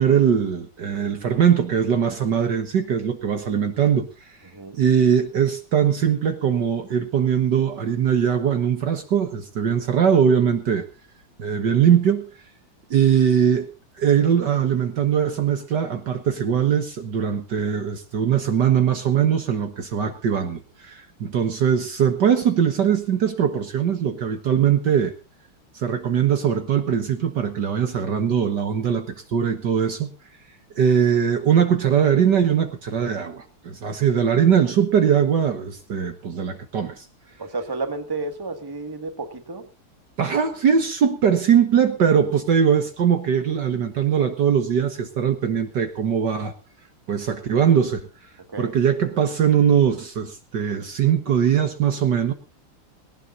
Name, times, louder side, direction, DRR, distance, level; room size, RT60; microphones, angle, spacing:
voice 1, 0.0-4.1 4.7-10.9 11.4-12.3 12.9-13.7 14.0-25.1 25.8-30.1 30.8-37.1 40.2-46.5 47.1-48.0 48.6-52.3, right 8 dB, 55° right, 7 dB, 1.7 m, -21 dB
voice 2, 37.4-39.7 48.5-48.7, right 3 dB, 10° right, 6 dB, 1.6 m, -31 dB
19.0 x 18.0 x 2.6 m, 0.31 s
omnidirectional pair, 2.4 m